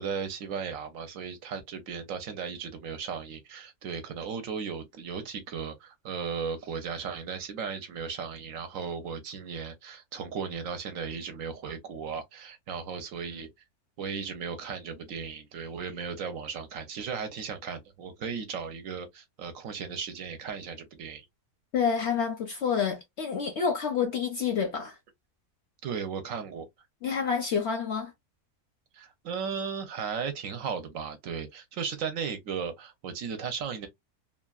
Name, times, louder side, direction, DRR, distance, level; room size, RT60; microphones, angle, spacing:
voice 1, 0.0-13.5 14.0-21.2 25.8-26.7 28.9-33.9, right 6 dB, 65° right, 1.0 m, -36 dB
voice 2, 21.7-25.0 27.0-28.1, left 6 dB, 60° left, 0.7 m, -28 dB
2.8 x 2.3 x 2.3 m
omnidirectional pair, 1.6 m